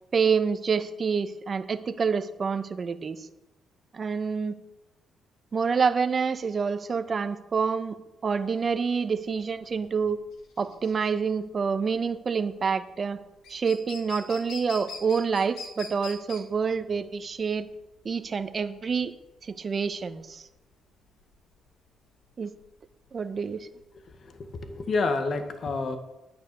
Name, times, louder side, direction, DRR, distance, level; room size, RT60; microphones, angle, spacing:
voice 1, 0.1-3.3 3.9-4.6 5.5-10.2 10.6-13.2 13.5-17.7 18.0-19.1 19.4-20.5 22.4-22.5 23.1-23.7, right 5 dB, 40° right, 10 dB, 1.1 m, -27 dB
sound 1, 8.3-24.6, left 4 dB, 85° left, 2.7 m, -45 dB
voice 2, 24.2-26.0, left 3 dB, 50° left, 7 dB, 1.7 m, -29 dB
10.5 x 9.4 x 6.9 m, 0.97 s
cardioid pair, 90°, 0 cm